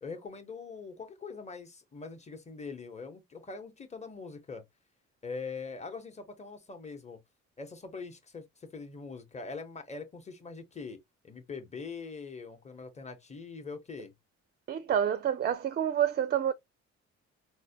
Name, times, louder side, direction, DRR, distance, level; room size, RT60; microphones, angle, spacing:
voice 1, 0.0-4.6 5.2-7.2 7.6-11.0 11.2-14.1, left 4 dB, 20° left, 0.9 m, -42 dB
voice 2, 14.7-16.5, right 9 dB, 35° right, 0.4 m, -28 dB
4.1 x 2.1 x 2.7 m
cardioid pair, 90°, 30 cm